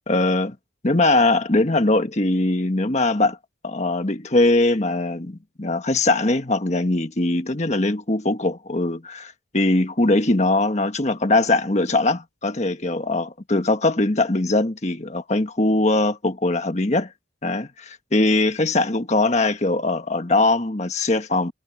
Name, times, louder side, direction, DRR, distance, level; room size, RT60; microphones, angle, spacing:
voice 1, 0.1-0.5 0.8-3.4 3.6-17.1 17.4-21.5, left 2 dB, 35° left, 1.4 m, -21 dB
head